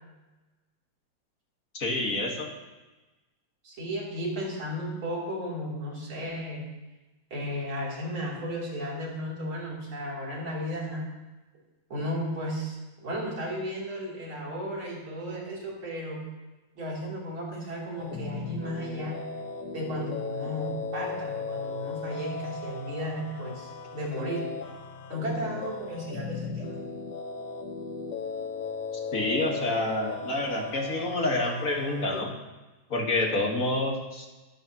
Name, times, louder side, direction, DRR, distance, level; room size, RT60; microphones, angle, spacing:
voice 1, 1.7-2.5 29.1-32.3 32.9-34.3, left 2 dB, 45° left, 0 dB, 2.0 m, -28 dB
voice 2, 3.6-6.7 7.3-11.1 11.9-16.2 16.8-19.2 19.7-24.5 25.1-26.8, equal, 85° right, -4 dB, 4.1 m, -34 dB
sound 1, 18.0-32.2, left 4 dB, 65° left, 1.4 m, -37 dB
22.0 x 8.2 x 3.0 m, 1.1 s
omnidirectional pair, 2.2 m